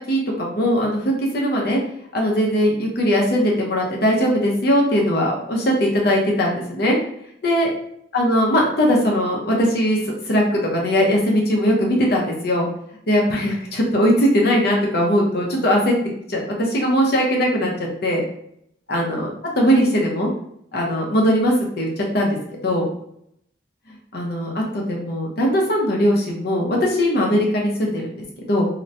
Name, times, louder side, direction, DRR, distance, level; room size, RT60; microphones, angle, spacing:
voice 1, 0.1-1.8 2.1-7.0 7.4-7.7 8.1-10.0 10.3-12.7 13.1-15.9 16.3-17.7 18.0-18.2 18.9-19.3 19.6-20.3 20.7-21.9 22.1-22.9 24.1-28.1 28.4-28.7, equal, 60° left, -1 dB, 0.7 m, -20 dB
3.0 x 2.1 x 2.5 m, 0.72 s
head